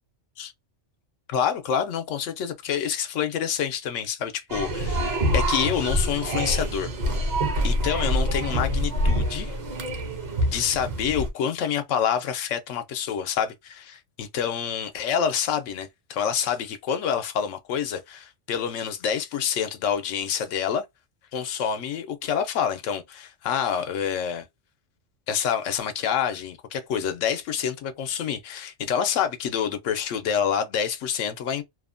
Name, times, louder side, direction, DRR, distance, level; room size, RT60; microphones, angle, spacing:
voice 1, 1.3-7.3 7.6-9.6 10.4-20.8 21.3-24.4 25.3-31.6, left 8 dB, 90° left, 0.9 m, -27 dB
sound 1, 4.5-11.3, equal, 45° right, 0.7 m, -26 dB
2.8 x 2.1 x 2.5 m
omnidirectional pair, 1.3 m